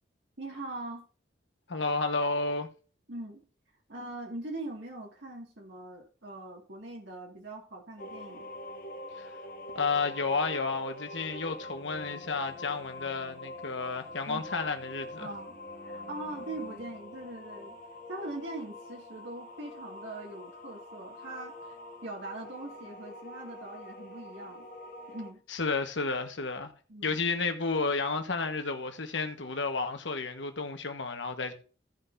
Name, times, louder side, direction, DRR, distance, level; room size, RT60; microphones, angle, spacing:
voice 1, 0.4-1.0 3.1-3.4 3.9-8.5 14.3-14.6 15.2-15.6 15.8-17.8 18.1-21.5 22.0-24.7 25.1-25.4 26.9-27.2, right 2 dB, 70° right, 2.0 m, -41 dB
voice 2, 1.7-2.7 9.2-9.3 9.7-15.3 25.5-26.7 27.0-31.5, left 4 dB, 80° left, 1.3 m, -31 dB
sound 1, 8.0-25.3, left 1 dB, 50° left, 1.3 m, -45 dB
Bowed string instrument, 14.2-18.4, right 2 dB, 35° right, 1.5 m, -56 dB
16.0 x 5.7 x 2.6 m
head